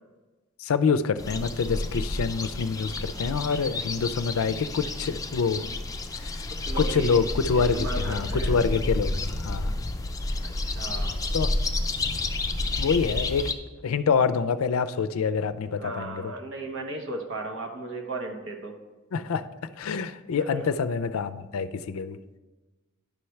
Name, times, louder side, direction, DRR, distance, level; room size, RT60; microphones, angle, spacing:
voice 1, 0.6-5.6 6.1-6.4 6.8-9.7 11.3-11.5 12.8-13.5 13.8-16.3 19.1-19.5 19.8-22.2, left 5 dB, 75° left, 11 dB, 0.4 m, -26 dB
sound 1, 1.2-13.5, left 2 dB, 15° left, 0.4 m, -30 dB
voice 2, 6.5-7.2 7.5-8.6 10.4-11.2 15.8-18.7 20.4-20.7, right 2 dB, 65° right, 3 dB, 1.1 m, -35 dB
10.5 x 5.7 x 3.2 m, 1.2 s
head